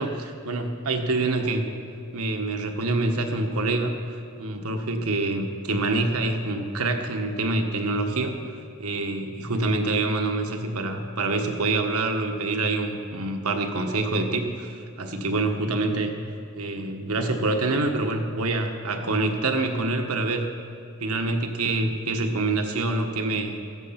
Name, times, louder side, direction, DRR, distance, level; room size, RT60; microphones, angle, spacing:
voice 1, 0.0-1.7 2.1-8.4 8.8-16.1 16.5-20.5 21.0-23.6, right 2 dB, 85° right, 4 dB, 1.4 m, -26 dB
16.0 x 14.5 x 5.8 m, 2.5 s
head